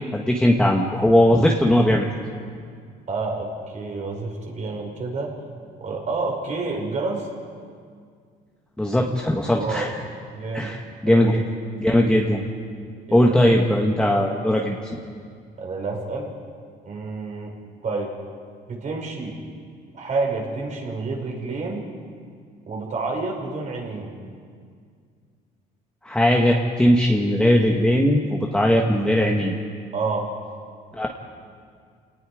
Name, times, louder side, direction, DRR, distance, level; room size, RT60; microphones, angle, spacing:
voice 1, 0.1-2.1 8.8-10.0 10.5-11.4 11.8-12.4 13.1-14.8 26.0-29.6 30.9-31.1, left 1 dB, 5° left, -1 dB, 1.6 m, -19 dB
voice 2, 3.1-3.5 3.7-5.3 5.8-7.3 9.6-9.9 10.3-10.8 11.0-11.4 13.1-13.6 15.6-16.3 16.8-17.6 17.8-18.1 18.7-19.4 19.9-21.8 22.7-24.2 29.9-30.3, right 3 dB, 45° right, 0 dB, 5.6 m, -29 dB
29.0 x 19.0 x 5.0 m, 2.1 s
cardioid pair, 110°, 17 cm